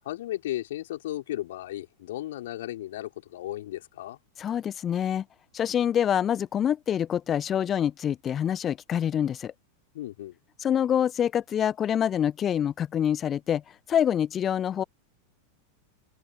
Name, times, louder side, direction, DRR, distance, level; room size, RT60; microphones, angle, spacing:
voice 1, 0.0-4.2 9.9-10.3, left 14 dB, 55° left, 5.0 m, -35 dB
voice 2, 4.4-5.2 5.5-9.5 10.6-13.6 13.9-14.8, left 9 dB, 25° left, 1.0 m, -26 dB
figure-of-eight pair, 90°, 0 cm